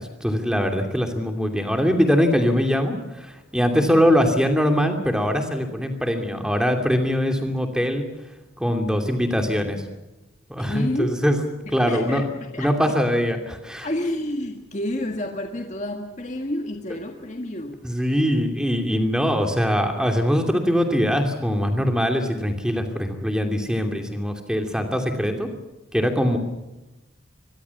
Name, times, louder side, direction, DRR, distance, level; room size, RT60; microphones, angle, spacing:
voice 1, 0.0-8.0 8.6-9.8 10.5-11.4 11.7-12.2 12.6-13.9 17.8-25.5 25.9-26.4, equal, 5° right, 4 dB, 2.7 m, -22 dB
voice 2, 10.6-11.2 11.6-13.0 13.8-17.8, left 1 dB, 35° left, 3 dB, 1.7 m, -30 dB
24.5 x 21.0 x 7.2 m, 1.0 s
head